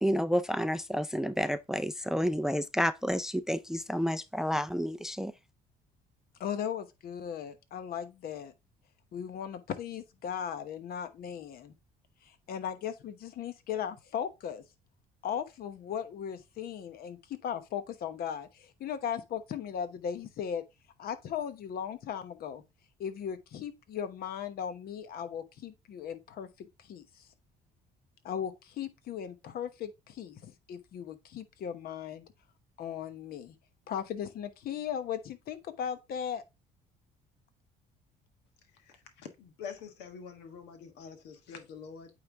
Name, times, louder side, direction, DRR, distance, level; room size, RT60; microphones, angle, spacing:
voice 1, 0.0-5.3, equal, 5° right, 0.4 m, -30 dB
voice 2, 6.4-8.5 9.1-11.7 12.5-14.6 15.2-20.6 21.0-22.6 23.0-27.0 28.2-32.2 32.8-33.6 33.9-36.4, left 8 dB, 65° left, 1.0 m, -37 dB
voice 3, 39.2-42.1, left 6 dB, 90° left, 1.4 m, -45 dB
8.8 x 3.3 x 3.5 m
cardioid pair, 110°, 17 cm